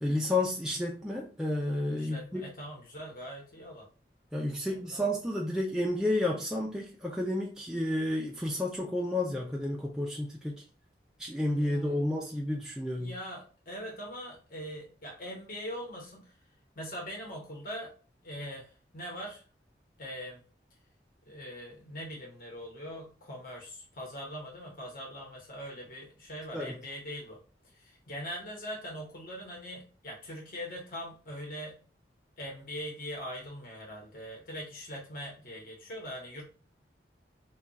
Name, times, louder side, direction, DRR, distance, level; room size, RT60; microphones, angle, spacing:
voice 1, 0.0-2.4 4.3-10.6 11.2-13.1 26.5-26.8, left 1 dB, 5° right, 0.3 m, -31 dB
voice 2, 2.0-3.9 4.6-5.1 5.5-5.6 11.5-12.1 13.0-16.2 16.8-17.9 18.2-19.4 20.0-20.4 21.3-27.4 27.7-31.8 32.4-36.4, equal, 50° left, 0.9 m, -42 dB
2.3 x 2.3 x 3.9 m
head